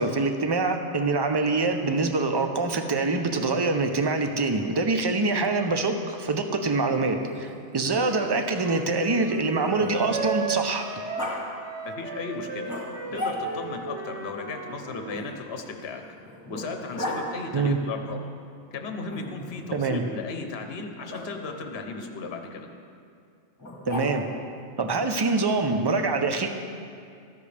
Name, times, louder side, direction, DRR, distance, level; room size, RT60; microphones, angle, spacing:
voice 1, 0.0-10.9 17.5-17.8 19.7-20.0 23.9-24.2 24.8-26.5, right 3 dB, 30° right, 6 dB, 0.5 m, -25 dB
Growling, 7.1-10.5 11.2-11.4 12.6-13.7 15.1-17.2 19.1-19.8 21.1-21.2 23.6-24.4, left 1 dB, 15° left, 1.9 m, -37 dB
Wind instrument woodwind instrument, 8.0-15.3, right 5 dB, 65° right, 1.2 m, -36 dB
voice 2, 11.8-12.7 13.1-16.0 16.5-18.2 18.7-22.7, left 4 dB, 60° left, 4 dB, 1.1 m, -35 dB
13.5 x 10.5 x 3.4 m, 2.4 s
omnidirectional pair, 1.2 m